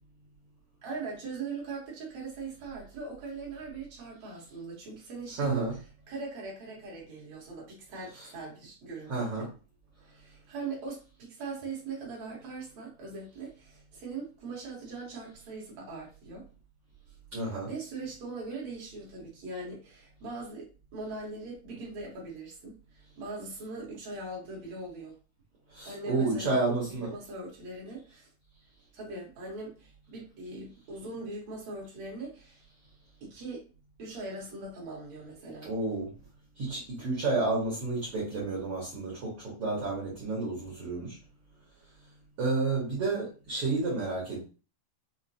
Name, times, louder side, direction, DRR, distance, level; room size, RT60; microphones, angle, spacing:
voice 1, 0.8-5.8 6.1-9.5 10.0-16.5 17.5-25.2 25.9-28.3 28.9-32.6 33.2-33.6 34.0-35.7, right 3 dB, 65° right, -3 dB, 1.8 m, -41 dB
voice 2, 5.4-5.7 9.1-9.5 17.3-17.7 25.7-27.1 35.6-36.1 36.6-41.1 42.4-44.4, right 3 dB, 85° right, -6 dB, 1.2 m, -30 dB
6.2 x 2.1 x 2.7 m, 0.35 s
omnidirectional pair, 4.6 m